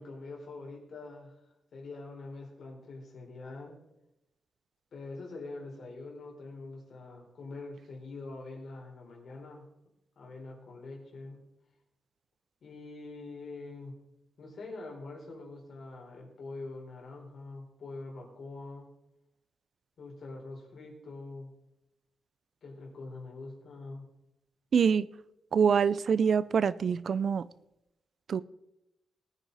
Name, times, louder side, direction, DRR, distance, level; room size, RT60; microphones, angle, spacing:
voice 1, 0.0-1.4 1.7-3.8 4.9-9.7 10.2-11.4 12.6-14.0 14.4-18.9 20.0-21.5 22.6-24.1, left 3 dB, 65° left, 4.2 m, -44 dB
voice 2, 24.7-25.1 25.5-27.5 28.3-28.4, right 6 dB, 60° right, 0.4 m, -25 dB
19.5 x 9.1 x 4.1 m
wide cardioid pair, 115°, 0 cm